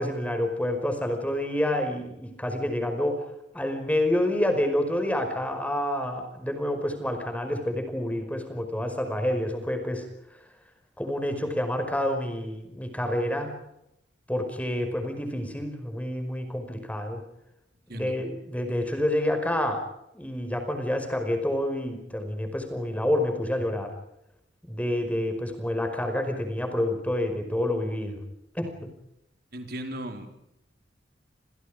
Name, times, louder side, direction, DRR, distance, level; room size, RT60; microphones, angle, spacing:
voice 1, 0.0-3.2 3.5-10.1 11.0-13.5 14.3-17.2 17.9-19.8 20.1-23.9 24.6-28.2 28.5-28.9, left 1 dB, 10° left, 6 dB, 5.1 m, -28 dB
voice 2, 29.5-30.3, right 1 dB, 60° right, 5 dB, 4.2 m, -36 dB
29.5 x 28.0 x 5.1 m, 0.81 s
head